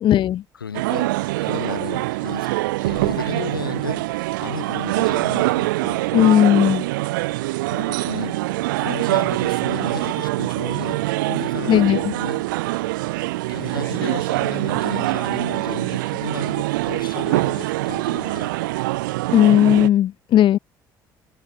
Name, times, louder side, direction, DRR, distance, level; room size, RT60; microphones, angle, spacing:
voice 1, 0.0-0.4 6.1-6.8 11.7-12.0 19.3-20.6, left 11 dB, 45° left, 0.9 m, -16 dB
voice 2, 0.5-1.1 1.4-6.1 7.7-8.4 8.8-12.8 13.5-18.5, left 7 dB, 80° left, 2.2 m, -34 dB
sound 1, 0.7-19.9, right 20 dB, 70° right, 0.7 m, -24 dB
figure-of-eight pair, 50°, 11 cm